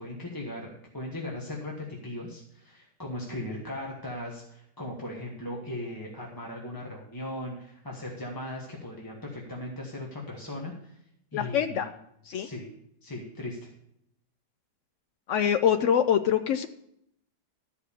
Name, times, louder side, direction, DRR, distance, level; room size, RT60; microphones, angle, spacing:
voice 1, 0.0-11.0 11.3-11.8 12.3-12.7 13.0-13.7, left 1 dB, 15° left, -2 dB, 1.1 m, -38 dB
voice 2, 11.3-11.9 12.3-12.5 15.3-16.7, left 9 dB, 90° left, 8 dB, 0.6 m, -24 dB
13.0 x 4.9 x 6.9 m, 0.75 s
omnidirectional pair, 1.9 m